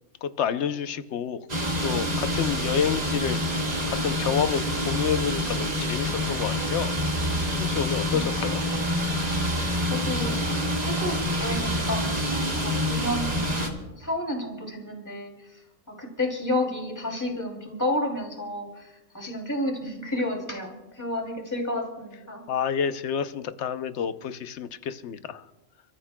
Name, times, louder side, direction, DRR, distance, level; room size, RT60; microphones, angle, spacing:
voice 1, 0.2-1.4 1.8-3.4 3.9-6.9 7.6-8.6 22.5-25.4, left 8 dB, 60° left, 11 dB, 0.9 m, -29 dB
sound 1, 1.5-13.7, equal, 30° right, 1.8 m, -27 dB
voice 2, 9.9-15.5 16.0-22.4, left 1 dB, 15° left, 1 dB, 2.7 m, -31 dB
30.0 x 14.0 x 2.2 m, 1.1 s
omnidirectional pair, 1.4 m